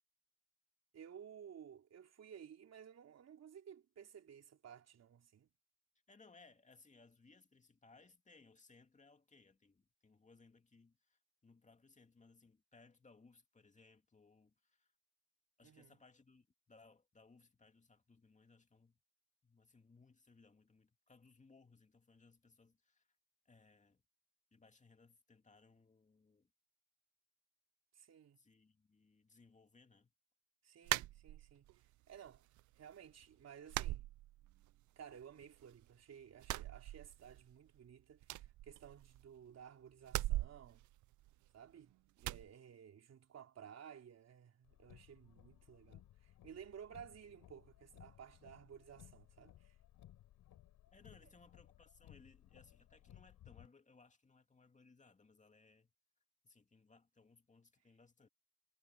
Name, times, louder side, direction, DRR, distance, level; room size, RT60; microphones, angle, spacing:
voice 1, 0.9-5.5 15.6-16.0 27.9-28.4 30.6-31.7 32.1-32.5 32.8-34.1 35.0-40.9 41.5-49.8, right 8 dB, 60° right, 3.6 m, -56 dB
voice 2, 6.1-14.9 15.6-19.0 19.4-23.1 23.4-24.0 24.5-26.5 28.4-30.1 50.9-55.9 56.4-58.3, left 4 dB, 25° left, 2.4 m, -66 dB
sound 1, 30.9-31.8 32.1-32.8 33.1-33.2 33.7-34.8 35.1-35.9 36.3-37.5 37.8-37.9 38.2-39.4 40.0-41.7 42.2-42.5, right 16 dB, 75° right, 0.6 m, -41 dB
Car, 44.6-53.7, left 13 dB, 80° left, 5.7 m, -62 dB
cardioid pair, 90°, 30 cm